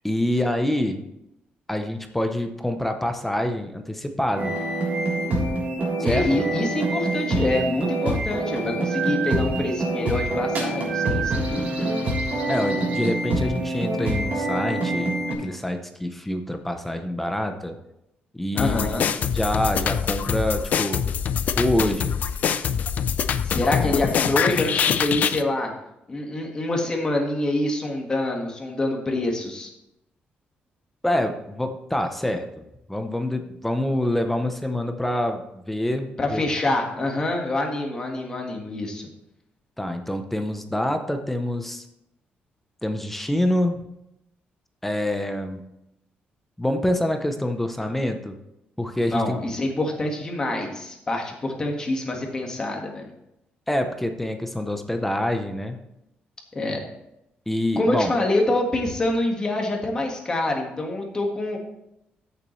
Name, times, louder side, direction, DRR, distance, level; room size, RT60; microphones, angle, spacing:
voice 1, 0.0-1.0 1.7-4.5 6.0-6.5 12.5-17.8 18.3-18.9 19.2-21.1 21.6-22.2 31.0-36.4 39.8-41.9 42.8-43.8 44.8-45.6 46.6-48.4 48.8-49.4 53.7-55.8 57.5-58.1, left 1 dB, 5° left, 6 dB, 0.7 m, -26 dB
sound 1, 4.3-15.3, right 2 dB, 45° right, 3.4 m, -25 dB
voice 2, 6.0-12.1 12.3-12.8 18.5-19.1 23.4-25.7 26.1-29.7 36.2-39.1 49.1-53.1 56.5-56.8 57.7-61.6, left 1 dB, 20° left, 1 dB, 1.6 m, -26 dB
sound 2, 18.6-25.4, left 7 dB, 45° left, 0.5 m, -24 dB
14.0 x 6.9 x 3.2 m, 0.85 s
cardioid pair, 175°, 4 cm